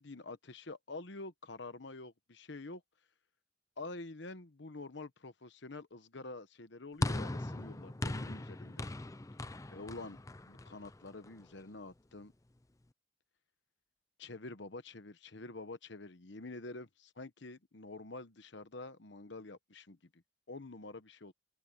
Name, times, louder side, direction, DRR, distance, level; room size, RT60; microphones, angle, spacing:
voice 1, 0.0-2.8 3.8-8.9 9.7-10.2 10.5-12.3 14.2-16.9 17.2-20.2 20.5-21.3, left 2 dB, 65° left, 1.1 m, -47 dB
sound 1, 7.0-11.4, left 2 dB, 15° left, 0.5 m, -39 dB
open air
head